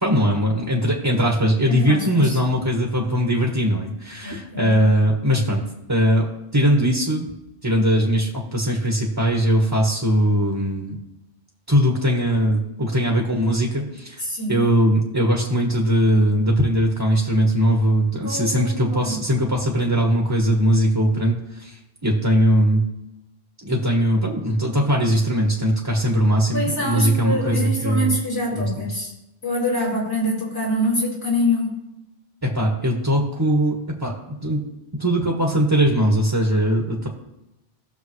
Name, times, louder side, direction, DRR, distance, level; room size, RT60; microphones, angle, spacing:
voice 1, 0.0-6.3 6.5-7.3 7.6-11.0 11.7-14.2 14.5-22.8 23.6-28.1 28.5-28.9 32.4-34.2 34.4-34.6 35.0-37.1, equal, 20° right, 0 dB, 1.4 m, -20 dB
voice 2, 1.7-2.4 4.2-4.8 14.2-14.7 18.2-19.2 26.1-26.2 26.5-29.1 29.4-31.7, left 1 dB, 90° left, -5 dB, 4.2 m, -25 dB
18.0 x 6.7 x 3.2 m, 0.92 s
omnidirectional pair, 1.1 m